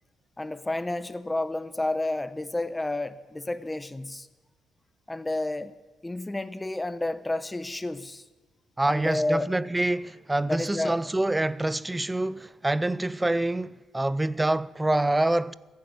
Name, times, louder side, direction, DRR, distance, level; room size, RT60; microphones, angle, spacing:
voice 1, 0.4-4.3 5.1-5.7 6.0-8.2 8.9-9.5 10.5-11.0, left 2 dB, 15° left, 1.0 m, -30 dB
voice 2, 8.8-15.5, right 2 dB, 15° right, 0.5 m, -26 dB
15.0 x 11.5 x 8.3 m
cardioid pair, 90°, 0 cm